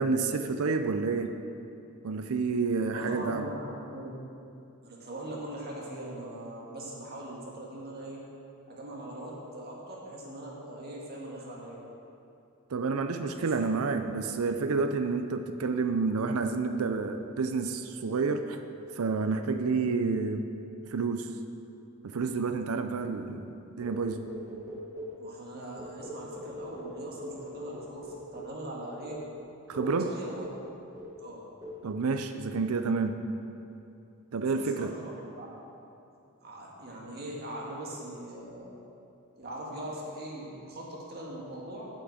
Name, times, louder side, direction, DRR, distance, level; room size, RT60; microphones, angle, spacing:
voice 1, 0.0-1.3 2.0-3.5 12.7-18.6 18.9-20.5 20.9-21.3 22.0-24.2 29.7-30.1 31.8-33.2 34.3-35.0, right 4 dB, 70° right, 7 dB, 0.5 m, -29 dB
voice 2, 2.9-4.2 4.8-8.2 8.7-11.8 13.4-14.1 25.2-29.2 29.7-30.4 31.2-31.4 34.5-35.1 35.4-35.5 36.4-38.8 39.4-41.9, right 1 dB, 45° right, -3 dB, 1.7 m, -41 dB
sound 1, 23.8-25.2 25.8-28.6 29.1-29.3 29.7-30.0 30.4-30.7 31.0-31.3 31.6-31.9, left 1 dB, 15° right, 1.4 m, -42 dB
8.3 x 6.0 x 7.9 m, 2.7 s
head